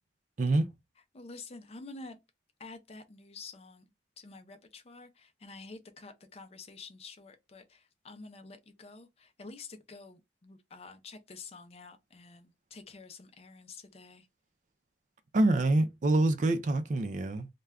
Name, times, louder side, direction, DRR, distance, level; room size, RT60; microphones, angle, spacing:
voice 1, 0.4-0.7 15.3-17.5, right 2 dB, 45° right, 0.4 m, -26 dB
voice 2, 1.1-2.2 2.6-3.9 4.2-14.3, left 3 dB, 35° left, 0.5 m, -49 dB
2.2 x 2.1 x 3.5 m
head